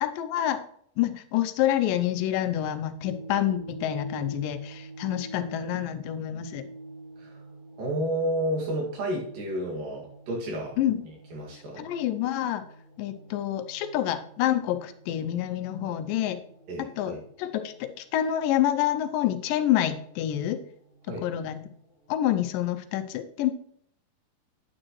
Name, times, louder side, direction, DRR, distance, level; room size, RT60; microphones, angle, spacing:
voice 1, 0.0-0.6 1.0-6.7 10.8-11.0 11.8-12.6 13.0-16.4 16.8-20.6 21.2-21.6 22.1-23.5, left 12 dB, 90° left, 10 dB, 2.3 m, -27 dB
sound 1, 3.0-22.5, right 2 dB, 50° left, 2.3 m, -47 dB
voice 2, 7.8-10.8 11.3-11.8 16.7-17.2 21.1-21.2, right 1 dB, 80° right, -3 dB, 3.9 m, -31 dB
9.7 x 8.9 x 3.1 m, 0.66 s
omnidirectional pair, 3.8 m